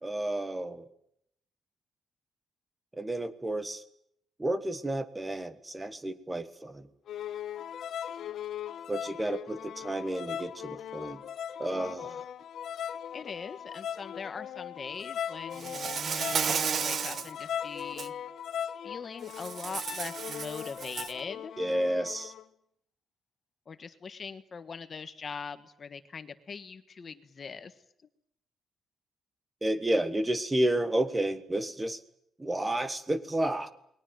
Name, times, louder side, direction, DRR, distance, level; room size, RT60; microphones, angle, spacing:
voice 1, 0.0-0.9 3.0-3.8 4.4-6.8 8.9-11.2 11.6-12.2 21.6-22.3 29.6-32.0 32.4-33.7, right 1 dB, 10° right, 12 dB, 1.4 m, -31 dB
sound 1, 7.1-22.4, left 9 dB, 60° left, 1.2 m, -39 dB
voice 2, 13.1-18.1 18.8-21.5 23.7-27.7, left 5 dB, 35° left, 11 dB, 1.4 m, -42 dB
Insect, 15.6-17.3 17.8-18.1 19.3-21.2, right 7 dB, 45° right, 1.1 m, -33 dB
29.5 x 21.0 x 9.2 m, 0.76 s
cardioid pair, 165°, 0 cm